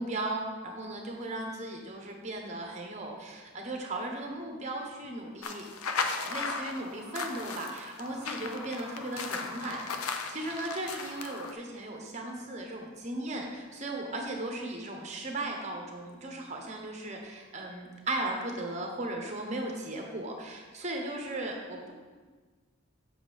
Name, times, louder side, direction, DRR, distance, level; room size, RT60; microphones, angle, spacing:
voice 1, 0.0-5.7 6.2-21.9, right 2 dB, 30° right, 1 dB, 1.0 m, -37 dB
sound 1, 5.4-11.5, left 5 dB, 85° left, 0.6 m, -36 dB
7.2 x 6.9 x 3.5 m, 1.4 s
head